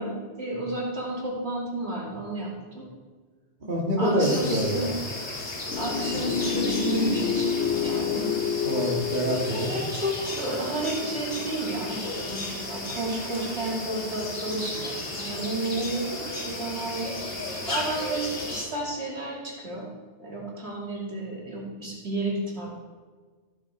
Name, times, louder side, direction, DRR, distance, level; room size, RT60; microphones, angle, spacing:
voice 1, 0.0-2.8 4.0-4.9 5.8-8.3 9.5-17.2 17.7-19.9 20.2-22.7, right 1 dB, 65° right, -4 dB, 3.0 m, -31 dB
voice 2, 3.6-4.9 6.1-6.2 8.6-9.7, equal, 40° right, -4 dB, 2.0 m, -26 dB
sound 1, 4.2-18.6, left 2 dB, 55° left, 1.9 m, -34 dB
sound 2, 5.7-10.8, left 7 dB, 80° left, 0.9 m, -29 dB
14.5 x 7.3 x 4.8 m, 1.5 s
omnidirectional pair, 1.2 m